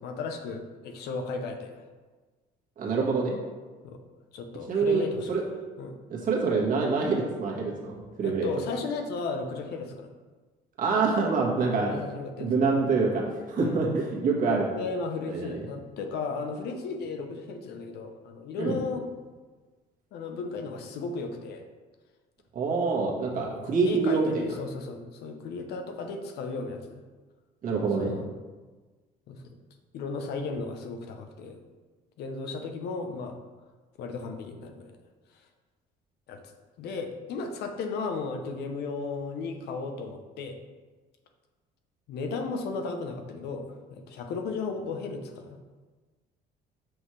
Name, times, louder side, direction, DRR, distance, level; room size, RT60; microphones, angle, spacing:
voice 1, 0.0-1.8 3.8-4.0 4.3-5.3 5.8-6.0 8.2-10.1 11.9-12.5 13.5-13.8 14.7-19.0 20.1-21.6 23.4-27.0 28.0-28.2 29.3-29.4 29.9-31.6 32.2-33.4 34.0-34.9 36.3-36.4 36.8-40.6 42.1-45.6, left 4 dB, 75° left, 5 dB, 0.9 m, -35 dB
voice 2, 2.8-3.4 4.7-5.4 6.1-8.5 10.8-12.0 12.4-14.7 15.3-15.6 18.6-18.7 22.5-24.5 27.6-28.1, right 4 dB, 55° right, -2 dB, 1.6 m, -26 dB
6.2 x 5.4 x 3.2 m, 1.3 s
cardioid pair, 110°, 17 cm